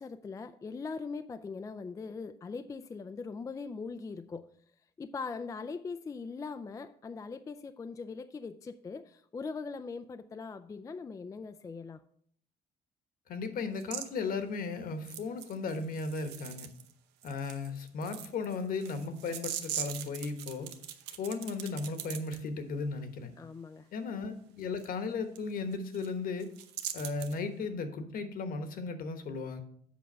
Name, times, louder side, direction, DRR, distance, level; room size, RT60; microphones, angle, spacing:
voice 1, 0.0-4.5 5.0-12.0 23.4-23.9, left 4 dB, 20° left, 10 dB, 0.3 m, -41 dB
voice 2, 13.3-16.7 17.2-20.7 21.2-23.3 23.9-26.5 26.9-29.6, left 4 dB, 60° left, 9 dB, 1.1 m, -36 dB
sound 1, 13.8-14.1 15.0-16.9 17.2-22.4 24.8-24.9 25.4-25.5 25.7-26.1 26.4-27.4, right 10 dB, 85° right, 0.8 m, -41 dB
7.7 x 5.1 x 5.4 m, 0.62 s
cardioid pair, 110°, 17 cm